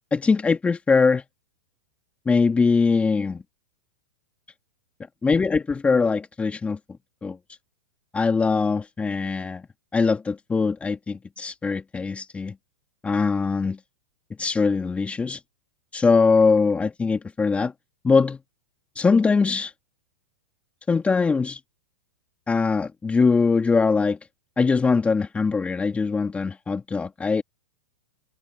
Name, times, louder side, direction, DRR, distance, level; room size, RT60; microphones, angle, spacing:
voice 1, 0.1-1.2 2.3-3.4 5.2-6.8 7.2-7.4 8.1-9.6 9.9-12.5 13.0-13.8 14.4-15.4 15.9-17.7 18.0-18.4 19.0-19.7 20.9-21.6 22.5-24.2 24.6-27.4, left 4 dB, 15° left, 2.2 m, -22 dB
hypercardioid pair, 110°, 9 cm